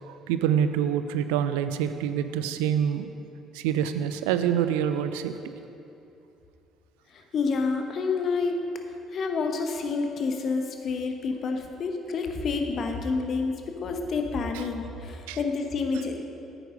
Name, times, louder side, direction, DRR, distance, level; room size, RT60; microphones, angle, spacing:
voice 1, 0.0-3.1 3.5-5.4 14.5-14.6 15.3-15.4, right 9 dB, 70° right, 10 dB, 0.5 m, -26 dB
voice 2, 7.1-8.6 9.1-13.5 13.8-16.2, left 4 dB, 50° left, 4 dB, 1.1 m, -28 dB
9.2 x 9.0 x 5.2 m, 2.7 s
figure-of-eight pair, 50°, 0 cm